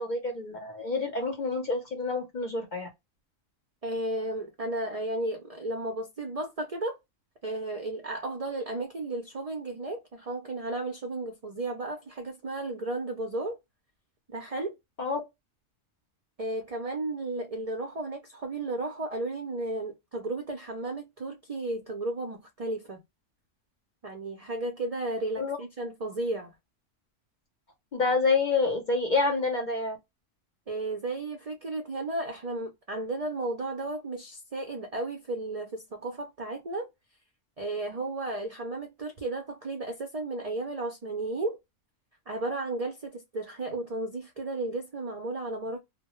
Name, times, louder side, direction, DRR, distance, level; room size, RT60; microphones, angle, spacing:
voice 1, 0.0-2.9 15.0-15.2 25.4-25.6 27.9-30.0, left 3 dB, 50° left, 0.6 m, -28 dB
voice 2, 3.8-7.0 7.4-13.6 14.3-14.8 16.4-23.0 24.0-26.5 30.7-36.9 37.6-41.6 42.3-45.8, right 2 dB, 55° right, 0.4 m, -34 dB
2.1 x 2.1 x 2.9 m
omnidirectional pair, 1.3 m